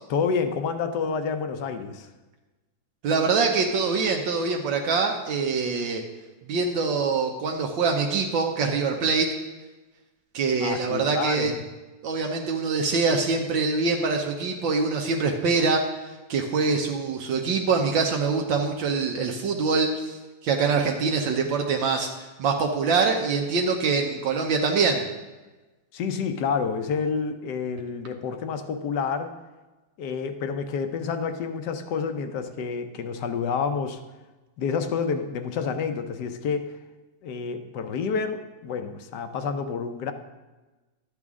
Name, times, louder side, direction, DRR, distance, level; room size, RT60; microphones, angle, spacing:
voice 1, 0.1-2.1 10.6-11.6 25.9-29.3 30.0-34.0 34.6-36.8 37.2-40.1, left 5 dB, 65° left, 8 dB, 1.2 m, -29 dB
voice 2, 3.0-6.0 6.5-9.3 10.3-11.5 12.0-15.8 16.3-20.2 20.4-25.1, right 4 dB, 75° right, 2 dB, 1.6 m, -24 dB
12.5 x 8.3 x 3.6 m, 1.2 s
omnidirectional pair, 2.1 m